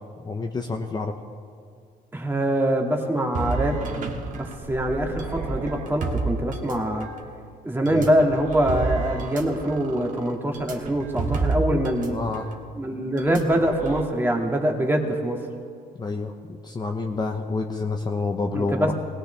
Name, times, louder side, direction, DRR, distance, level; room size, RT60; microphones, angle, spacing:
voice 1, 0.2-1.1 7.8-8.1 12.1-12.5 16.0-18.9, left 3 dB, 25° left, 3 dB, 0.8 m, -28 dB
voice 2, 2.1-3.9 4.3-7.1 7.6-12.2 12.8-15.4 18.5-18.9, right 1 dB, 10° right, 1 dB, 2.0 m, -24 dB
sound 1, 3.3-7.2 7.9-12.1 12.3-12.5 13.2-14.0, right 3 dB, 50° right, 1.7 m, -30 dB
19.5 x 17.5 x 3.4 m, 2.3 s
cardioid pair, 110°, 17 cm